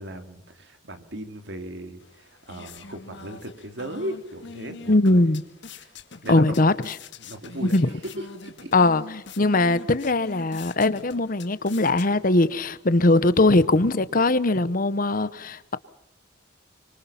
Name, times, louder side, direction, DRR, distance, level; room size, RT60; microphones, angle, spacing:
voice 1, 0.0-5.2 5.8-5.9 6.2-6.6 7.2-8.7, right 1 dB, 60° right, 3.2 m, -37 dB
sound 1, 2.0-12.5, left 4 dB, 65° left, 2.0 m, -44 dB
voice 2, 4.9-5.4 6.3-6.9 7.6-7.9 8.7-9.0 9.4-15.8, left 2 dB, 45° left, 0.9 m, -20 dB
26.5 x 25.0 x 5.9 m
head